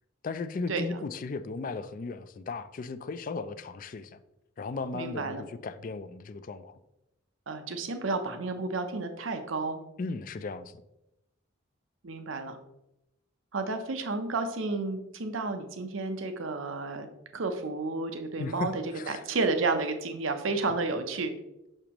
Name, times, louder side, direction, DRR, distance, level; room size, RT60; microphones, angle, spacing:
voice 1, 0.2-4.2 4.6-6.8 10.0-10.8 18.4-19.2, left 4 dB, 45° left, 0.4 m, -36 dB
voice 2, 4.9-5.4 7.5-9.8 12.0-12.6 13.5-17.1 17.3-21.3, right 3 dB, 85° right, 0.7 m, -31 dB
6.6 x 6.0 x 3.0 m
head